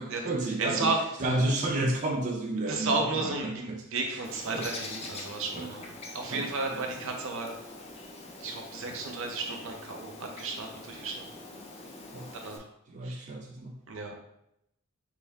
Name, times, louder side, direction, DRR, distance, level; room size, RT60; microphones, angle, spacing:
voice 1, 0.0-0.9 1.2-3.8 4.5-4.7 5.6-5.7 6.3-6.5 6.7-6.8 12.1-12.3 12.9-13.8, right 2 dB, 35° right, 0 dB, 0.4 m, -31 dB
voice 2, 0.6-1.2 2.7-7.6 8.4-11.3 12.3-12.6 13.0-13.3 13.9-14.2, right 3 dB, 65° right, 2 dB, 0.8 m, -33 dB
Bird, 4.2-12.6, left 2 dB, 30° left, 0.6 m, -44 dB
6.1 x 2.2 x 3.5 m, 0.79 s
head